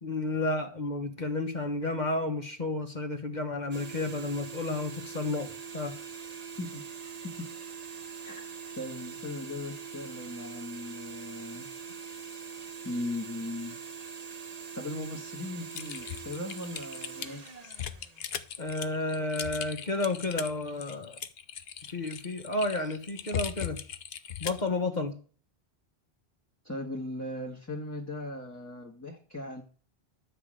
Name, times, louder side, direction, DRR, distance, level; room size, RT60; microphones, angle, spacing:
voice 1, 0.0-5.5 5.7-5.9 18.6-21.2 21.9-23.8 24.4-25.2, left 2 dB, 45° left, 4 dB, 1.4 m, -31 dB
sound 1, 3.7-18.9, right 6 dB, 40° right, 1.1 m, -43 dB
voice 2, 8.2-11.7 12.8-13.8 14.5-17.4 26.6-29.6, left 1 dB, 15° left, 0 dB, 1.5 m, -38 dB
Typing, 15.7-24.7, left 8 dB, 70° left, 1.0 m, -38 dB
12.0 x 5.2 x 7.6 m, 0.41 s
omnidirectional pair, 1.1 m